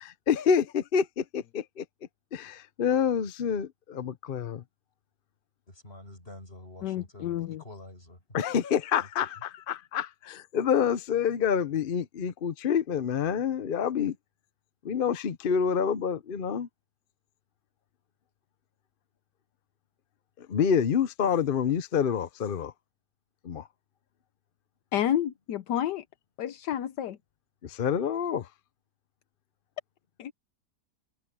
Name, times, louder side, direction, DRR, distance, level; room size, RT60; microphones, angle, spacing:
voice 1, 0.0-1.8 2.3-4.6 8.3-14.1 14.8-16.7 20.4-22.7 23.4-23.7 27.6-28.5, left 7 dB, 50° left, 0.6 m, -27 dB
voice 2, 5.7-8.4 9.0-9.1 9.4-9.5, left 1 dB, 35° left, 6.3 m, -47 dB
voice 3, 6.8-7.6 24.9-26.0 26.4-27.2 30.2-30.3, left 11 dB, 80° left, 1.4 m, -30 dB
omnidirectional pair, 1.8 m